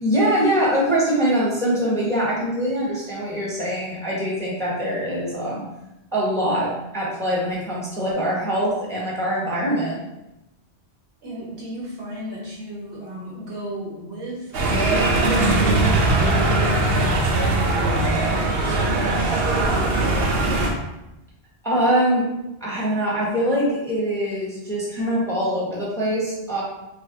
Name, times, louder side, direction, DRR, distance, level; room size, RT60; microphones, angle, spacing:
voice 1, 0.0-5.6 6.1-10.0 21.6-22.3 22.6-26.6, equal, 5° left, -6 dB, 0.8 m, -23 dB
voice 2, 11.2-16.5 16.8-20.5, right 1 dB, 90° right, -5 dB, 1.4 m, -34 dB
sound 1, 14.5-20.7, right 2 dB, 65° right, 0.8 m, -20 dB
3.3 x 2.0 x 3.7 m, 0.92 s
omnidirectional pair, 1.1 m